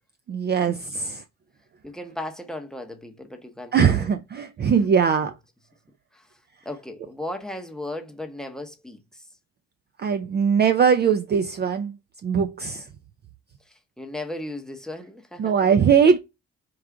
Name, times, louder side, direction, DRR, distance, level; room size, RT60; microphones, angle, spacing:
voice 1, 0.3-1.2 3.7-5.4 10.0-12.0 12.2-12.9 15.4-16.2, right 7 dB, 35° right, 0.4 m, -20 dB
voice 2, 1.8-4.0 6.1-6.3 6.6-9.2 13.7-15.5, left 1 dB, ahead, 0.8 m, -36 dB
4.5 x 2.4 x 3.6 m
cardioid pair, 90°, 30 cm